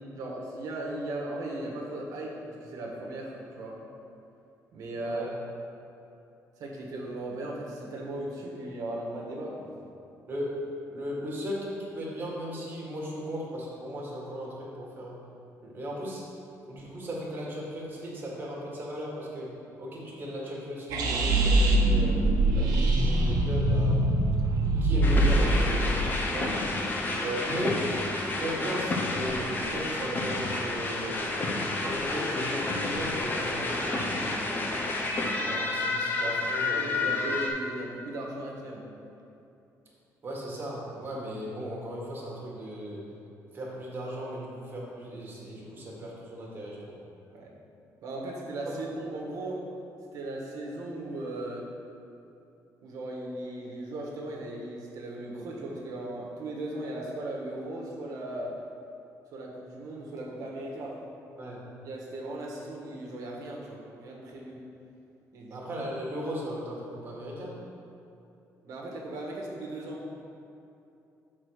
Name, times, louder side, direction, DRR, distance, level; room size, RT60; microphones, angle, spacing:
voice 1, 0.2-3.8 4.7-5.3 6.6-9.7 36.7-38.9 47.3-47.5 48.0-49.7 50.1-51.7 52.8-58.5 59.3-61.0 61.5-61.6 61.8-64.6 65.3-65.6 68.6-70.0, right 1 dB, 70° right, -2 dB, 1.4 m, -37 dB
voice 2, 10.3-10.6 10.9-15.2 15.6-16.2 16.7-22.2 22.5-24.2 24.8-26.6 27.1-27.9 28.2-31.2 31.6-34.1 35.3-37.2 40.2-43.0 43.5-47.0 48.7-48.8 61.4-61.6 65.5-67.6, equal, 35° right, -4 dB, 1.6 m, -36 dB
sound 1, 20.9-26.0, right 1 dB, 85° right, 1.0 m, -23 dB
sound 2, 25.0-37.5, left 2 dB, 30° left, 0.7 m, -30 dB
6.1 x 4.4 x 6.3 m, 2.8 s
cardioid pair, 145°, 6 cm